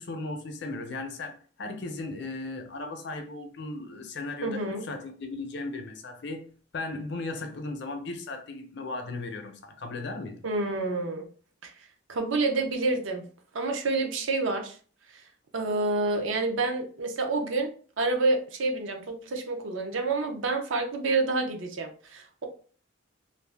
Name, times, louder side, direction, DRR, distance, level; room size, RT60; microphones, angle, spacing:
voice 1, 0.0-6.4 6.7-10.4, left 2 dB, 60° left, 0.5 m, -36 dB
voice 2, 4.4-4.8 10.4-11.3 11.6-11.7 12.1-13.3 13.5-14.8 15.5-22.5, right 3 dB, 80° right, 0.6 m, -28 dB
2.6 x 2.0 x 3.3 m
head